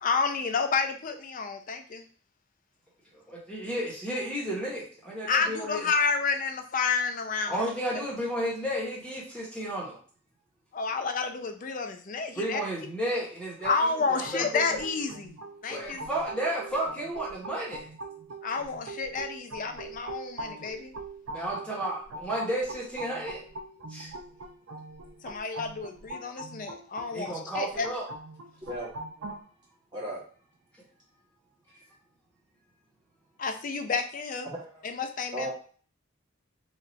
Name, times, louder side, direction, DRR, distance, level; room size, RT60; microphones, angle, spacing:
voice 1, 0.0-2.0 5.3-7.6 10.7-12.6 13.6-15.4 15.6-16.0 18.4-20.9 25.2-27.9 33.4-34.5 34.8-35.5, left 5 dB, 40° left, 6 dB, 0.4 m, -30 dB
voice 2, 3.1-5.8 7.5-10.0 12.4-14.6 15.7-17.9 21.3-23.4 23.9-24.1 27.0-28.0, right 1 dB, 5° left, -5 dB, 0.9 m, -32 dB
sound 1, 13.6-29.4, right 2 dB, 80° right, 0.5 m, -42 dB
voice 3, 34.5-34.9 35.3-35.5, right 1 dB, 20° right, -7 dB, 1.1 m, -35 dB
4.0 x 2.4 x 3.1 m, 0.43 s
head